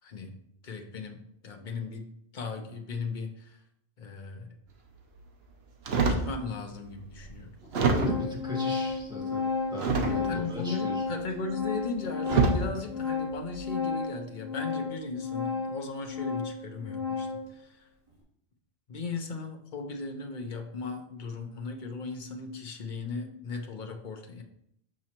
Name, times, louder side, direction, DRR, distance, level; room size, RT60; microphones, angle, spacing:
voice 1, 0.0-0.3 0.6-2.1 2.3-3.6 4.0-4.6 6.1-7.5 10.1-17.9 18.9-24.4, left 4 dB, 50° left, 3 dB, 1.0 m, -37 dB
sound 1, 5.9-6.3 7.0-7.1 7.7-8.4 9.8-10.5 11.6-11.8 12.2-12.7 13.4-13.7, right 4 dB, 75° right, 1.1 m, -25 dB
Organ, 6.3-6.4 7.2-7.3 7.6-17.5, left 5 dB, 35° right, 2.5 m, -33 dB
voice 2, 7.8-9.4 9.7-11.0, left 1 dB, 5° right, -5 dB, 1.8 m, -38 dB
6.2 x 6.2 x 2.9 m, 0.73 s
omnidirectional pair, 1.1 m